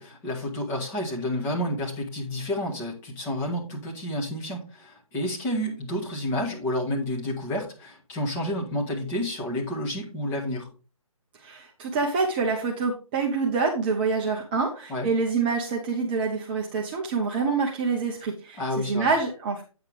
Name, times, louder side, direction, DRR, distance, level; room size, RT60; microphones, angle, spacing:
voice 1, 0.0-10.7 14.9-15.1 18.6-19.1, left 1 dB, 15° left, -2 dB, 1.6 m, -30 dB
voice 2, 11.3-19.6, right 4 dB, 15° right, 0 dB, 0.7 m, -26 dB
8.8 x 7.1 x 3.4 m, 0.35 s
figure-of-eight pair, 145°, 18 cm